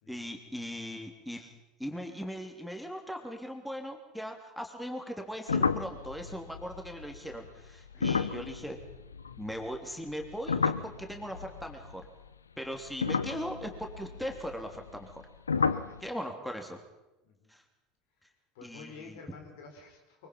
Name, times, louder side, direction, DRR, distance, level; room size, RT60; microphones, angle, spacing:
voice 1, 0.1-1.5 1.8-8.8 9.4-12.1 12.6-15.2 16.0-16.8 17.5-17.6 18.6-19.2, equal, ahead, 3 dB, 3.3 m, -39 dB
sound 1, 5.5-9.8 10.1-12.3 12.9-15.2 15.5-16.0, left 5 dB, 80° left, 0.8 m, -32 dB
voice 2, 7.9-8.3 15.5-16.4 17.2-17.5 18.5-20.3, left 4 dB, 65° left, 4 dB, 4.2 m, -51 dB
24.0 x 23.5 x 5.5 m, 0.97 s
figure-of-eight pair, 70°, 0 cm